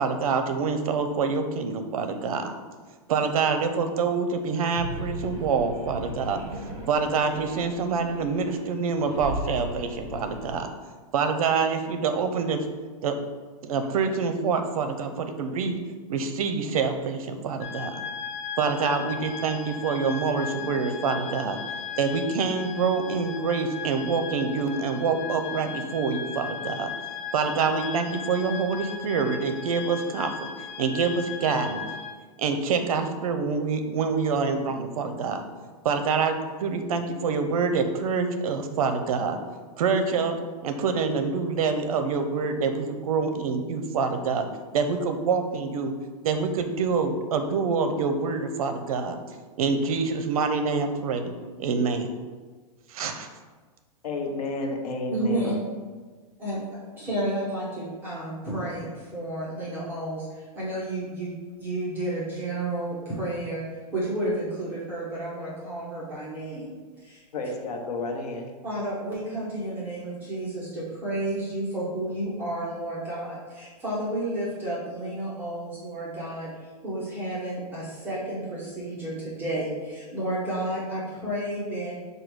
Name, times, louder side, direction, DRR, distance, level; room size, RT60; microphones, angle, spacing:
voice 1, 0.0-2.5 3.1-10.7 11.1-12.7 13.0-13.1 13.6-15.8 16.1-18.0 18.6-21.6 22.0-26.9 27.3-31.9 32.4-35.4 35.8-39.4 39.8-40.4 40.6-44.5 44.7-45.9 46.2-49.2 49.6-51.3 51.6-52.1 52.9-53.3, right 5 dB, 65° right, 7 dB, 0.6 m, -26 dB
sound 1, 4.6-10.6, right 1 dB, 40° right, 1.1 m, -37 dB
sound 2, 17.6-32.1, left 7 dB, 40° left, 0.4 m, -37 dB
voice 2, 54.0-55.6 67.3-68.5, left 2 dB, 80° left, 2 dB, 0.9 m, -31 dB
voice 3, 55.1-55.5 56.4-56.6 57.0-61.3 61.6-63.6 63.9-66.7 67.0-67.2 68.6-76.5 76.8-81.9, right 1 dB, 10° right, -8 dB, 0.8 m, -31 dB
4.8 x 2.3 x 4.6 m, 1.4 s
supercardioid pair, 170°, 20 cm